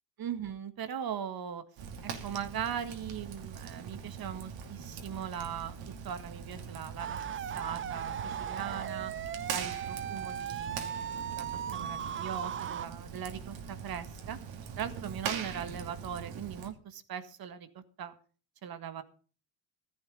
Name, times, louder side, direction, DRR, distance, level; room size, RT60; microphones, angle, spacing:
voice 1, 0.2-1.6 2.0-5.8 6.0-7.2 7.5-9.1 9.5-14.4 14.8-18.2 18.6-19.0, right 8 dB, 45° right, 11 dB, 1.8 m, -39 dB
Fire, 1.8-16.7, right 7 dB, 60° right, 2.8 m, -42 dB
sound 1, 7.0-12.9, right 9 dB, 25° right, 0.5 m, -37 dB
14.0 x 11.0 x 5.3 m, 0.40 s
supercardioid pair, 90°, 49 cm